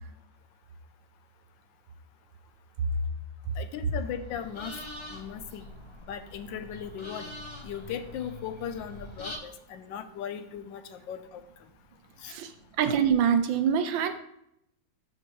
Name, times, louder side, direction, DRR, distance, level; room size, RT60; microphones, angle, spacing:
voice 1, 3.6-4.7 5.1-5.7 6.1-7.3 7.6-11.4 12.2-12.3, left 8 dB, 75° left, 10 dB, 1.3 m, -38 dB
sound 1, 3.9-9.4, left 1 dB, 25° left, 0.6 m, -44 dB
voice 2, 12.8-14.1, right 8 dB, 80° right, 8 dB, 1.4 m, -24 dB
12.5 x 4.4 x 3.1 m, 0.77 s
omnidirectional pair, 2.1 m